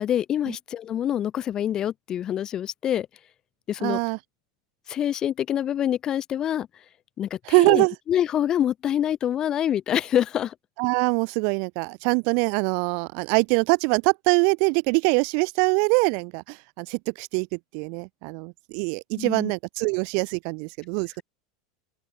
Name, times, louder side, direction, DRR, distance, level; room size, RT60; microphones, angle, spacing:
voice 1, 0.0-3.1 3.7-4.0 4.9-6.7 7.2-10.5 19.2-19.5, left 10 dB, 25° left, 1.2 m, -26 dB
voice 2, 3.8-4.2 7.5-7.9 10.8-21.2, right 40 dB or more, 45° right, 0.9 m, -23 dB
open air
supercardioid pair, 165°, 3 cm